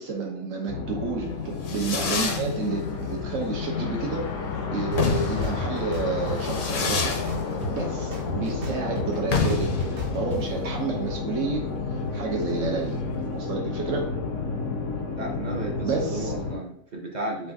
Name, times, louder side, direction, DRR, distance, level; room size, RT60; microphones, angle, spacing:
voice 1, 0.0-4.3 4.7-7.2 7.7-9.8 10.1-11.6 12.1-13.0 13.3-14.1 15.8-16.3, right 4 dB, 90° right, 0 dB, 1.2 m, -30 dB
sound 1, 0.7-16.6, left 4 dB, 80° left, 1.0 m, -31 dB
Fireworks, 1.3-13.5, left 5 dB, 55° left, 0.7 m, -31 dB
sound 2, 4.9-5.0 5.4-6.4 6.8-7.8 8.1-10.4, right 2 dB, 65° right, 1.0 m, -34 dB
voice 2, 15.1-17.5, right 2 dB, 45° right, 0 dB, 0.7 m, -34 dB
6.2 x 2.4 x 2.6 m, 0.71 s
omnidirectional pair, 1.3 m